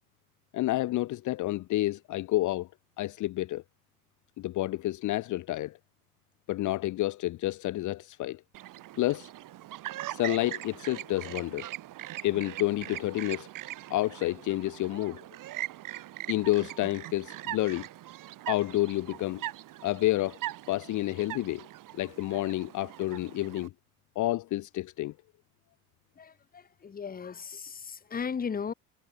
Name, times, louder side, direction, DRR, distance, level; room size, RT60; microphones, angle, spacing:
voice 1, 0.5-2.7 3.0-3.6 4.4-5.8 6.5-8.4 9.0-9.3 10.1-11.7 12.2-13.5 13.9-15.2 16.3-17.9 18.5-19.4 19.8-20.4 20.7-21.7 22.0-23.7 24.1-25.1, left 16 dB, 40° left, 1.1 m, -29 dB
Chirp tweet, 8.5-23.7, right 15 dB, 40° right, 2.3 m, -41 dB
voice 2, 26.2-28.7, left 6 dB, 20° left, 1.5 m, -36 dB
figure-of-eight pair, 65°, 47 cm